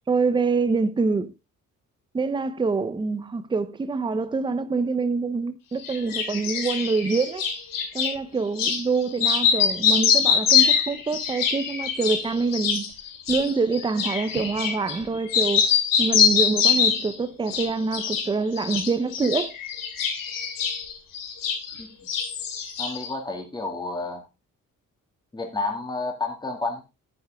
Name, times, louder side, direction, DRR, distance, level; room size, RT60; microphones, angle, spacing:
voice 1, 0.1-1.3 2.1-7.4 7.9-12.8 13.3-15.7 16.0-19.6, right 4 dB, 15° right, 0.7 m, -25 dB
sound 1, 5.8-8.1 8.6-8.8 9.1-15.0 15.3-17.1 17.5-18.3 18.6-21.8 22.1-23.1, left 7 dB, 85° left, 2.9 m, -24 dB
voice 2, 22.8-24.2 25.3-26.8, left 3 dB, 15° left, 2.2 m, -30 dB
10.5 x 9.7 x 3.5 m
cardioid pair, 170°, 32 cm